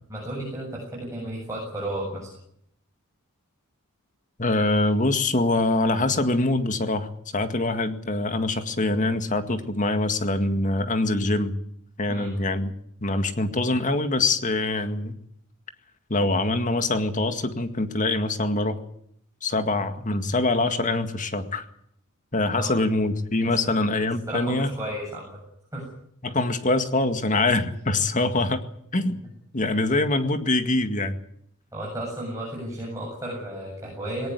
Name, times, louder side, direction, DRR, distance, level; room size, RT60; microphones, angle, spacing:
voice 1, 0.1-2.3 12.1-12.4 22.6-22.8 24.3-25.4 25.7-25.9 31.7-34.3, right 1 dB, 15° right, -3 dB, 7.6 m, -33 dB
voice 2, 4.4-11.5 12.0-12.7 13.0-15.2 16.1-18.8 19.4-21.6 22.3-24.7 26.2-29.2 29.5-31.1, left 2 dB, 35° left, 8 dB, 2.0 m, -24 dB
19.5 x 18.5 x 9.6 m, 0.71 s
head